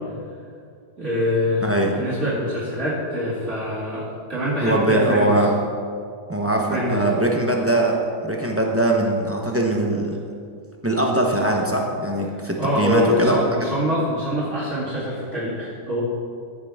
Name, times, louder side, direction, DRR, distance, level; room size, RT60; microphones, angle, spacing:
voice 1, 1.0-1.6 1.9-5.3 6.7-7.2 12.6-16.0, left 1 dB, 40° right, -9 dB, 2.8 m, -24 dB
voice 2, 1.6-1.9 4.6-5.5 6.3-10.2 10.8-13.4, right 1 dB, 15° right, 0 dB, 0.5 m, -21 dB
14.0 x 7.6 x 3.6 m, 2.2 s
omnidirectional pair, 1.8 m